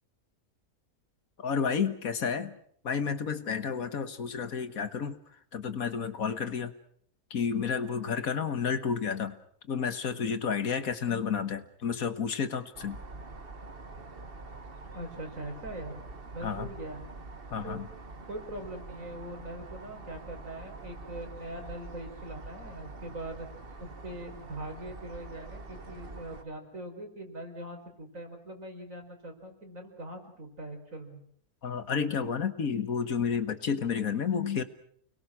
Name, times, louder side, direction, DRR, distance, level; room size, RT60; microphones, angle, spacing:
voice 1, 1.4-2.6 2.8-5.2 5.5-6.7 7.3-9.4 9.7-13.0 16.4-16.7 17.5-17.9 31.6-34.6, left 6 dB, 70° left, 10 dB, 1.8 m, -31 dB
sound 1, 12.7-26.4, right 3 dB, 40° right, 1.6 m, -45 dB
voice 2, 14.9-17.0 17.6-17.8 18.3-23.5 23.8-31.2, right 1 dB, 60° right, 3 dB, 5.2 m, -42 dB
30.0 x 21.5 x 6.2 m, 0.63 s
omnidirectional pair, 1.5 m